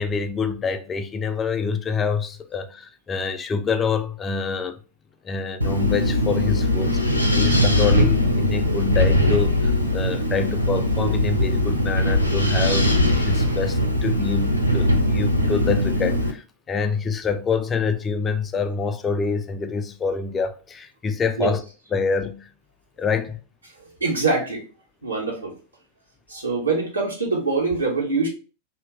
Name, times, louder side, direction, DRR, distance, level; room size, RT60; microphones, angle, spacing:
voice 1, 0.0-4.8 5.2-21.6 21.9-22.5 23.0-23.4, left 5 dB, 20° left, 0.4 m, -26 dB
Wind, 5.6-16.3, left 1 dB, 90° left, 0.5 m, -20 dB
voice 2, 24.0-24.6 25.0-25.5 26.3-28.3, right 3 dB, 85° right, 1.4 m, -24 dB
2.8 x 2.7 x 3.2 m
figure-of-eight pair, 90°, 0 cm